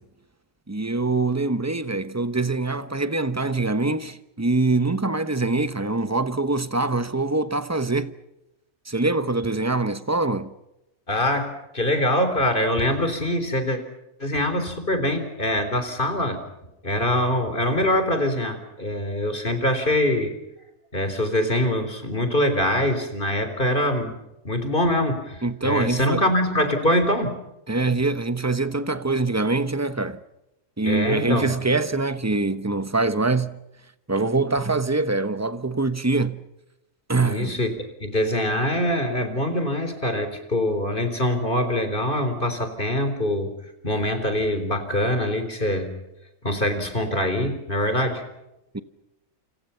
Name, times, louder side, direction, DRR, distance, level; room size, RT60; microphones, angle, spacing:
voice 1, 0.7-8.1 8.9-10.5 25.4-26.2 27.7-30.2 30.8-33.6 34.1-36.4 37.1-37.6 48.7-48.8, right 3 dB, 15° right, 1.0 m, -24 dB
voice 2, 11.1-13.8 14.2-16.4 16.8-20.3 20.9-24.2 24.4-27.4 30.8-31.5 37.2-37.7 38.0-43.5 43.8-45.9 46.4-48.2, left 1 dB, 40° left, 4.0 m, -24 dB
28.5 x 27.5 x 5.7 m
omnidirectional pair, 1.4 m